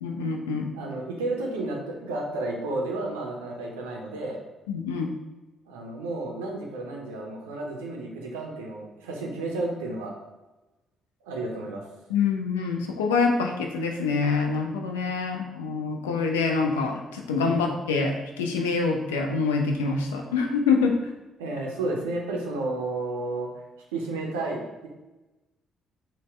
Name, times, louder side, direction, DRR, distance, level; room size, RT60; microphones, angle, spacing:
voice 1, 0.0-0.7 4.7-5.1 12.1-21.0, left 4 dB, 75° left, 2 dB, 0.4 m, -26 dB
voice 2, 0.7-4.4 5.7-10.1 11.2-11.8 17.4-17.6 21.4-23.5 23.9-24.9, right 2 dB, 70° right, -1 dB, 0.5 m, -32 dB
3.9 x 2.1 x 4.3 m, 1.1 s
figure-of-eight pair, 45°, 0 cm